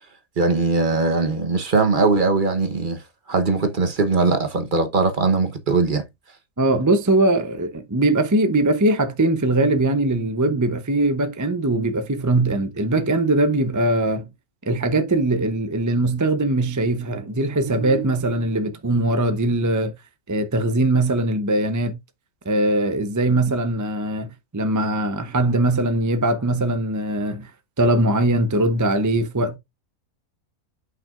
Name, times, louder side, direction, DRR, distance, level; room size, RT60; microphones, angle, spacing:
voice 1, 0.4-3.0 3.3-6.0, right 3 dB, 40° right, 1.1 m, -20 dB
voice 2, 6.6-14.3 14.7-19.9 20.3-22.0 22.4-27.5 27.8-29.6, right 2 dB, 20° right, 0.4 m, -21 dB
8.9 x 5.8 x 2.5 m
omnidirectional pair, 1.5 m